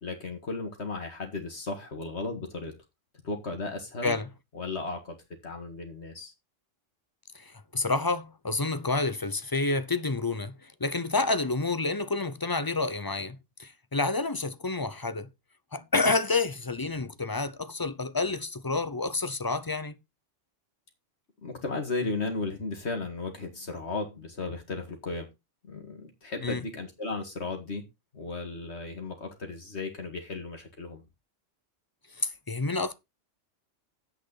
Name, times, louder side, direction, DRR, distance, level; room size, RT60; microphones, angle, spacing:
voice 1, 0.0-2.7 3.2-4.2 4.5-5.2 5.4-6.3 21.4-25.3 25.6-27.8 28.1-31.0, left 3 dB, 60° left, 2.1 m, -35 dB
voice 2, 7.3-15.3 15.7-20.0 26.4-26.6 32.2-32.9, left 3 dB, 25° left, 0.5 m, -29 dB
9.9 x 8.3 x 4.0 m
omnidirectional pair, 1.3 m